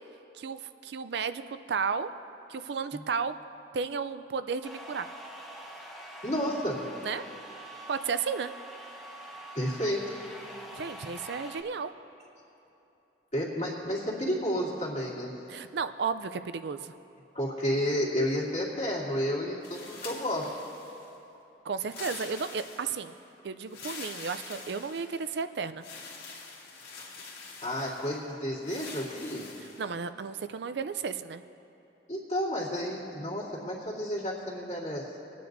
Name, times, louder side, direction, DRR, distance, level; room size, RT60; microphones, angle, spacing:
voice 1, 0.3-2.1 2.5-3.3 3.7-5.1 7.0-7.2 7.9-8.5 10.7-11.9 15.5-16.9 21.6-23.1 23.4-25.8 29.8-31.4, right 5 dB, 65° right, 11 dB, 0.4 m, -33 dB
sound 1, 4.6-11.6, right 1 dB, ahead, 1.3 m, -45 dB
voice 2, 6.2-6.8 9.5-10.2 13.3-15.3 17.3-20.6 27.6-29.5 32.1-35.1, equal, 40° left, -6 dB, 2.4 m, -31 dB
sound 2, 19.6-21.1 21.8-23.1 23.7-25.3 25.8-28.2 28.6-29.9, left 4 dB, 65° left, 2.0 m, -45 dB
27.5 x 9.4 x 2.6 m, 2.9 s
head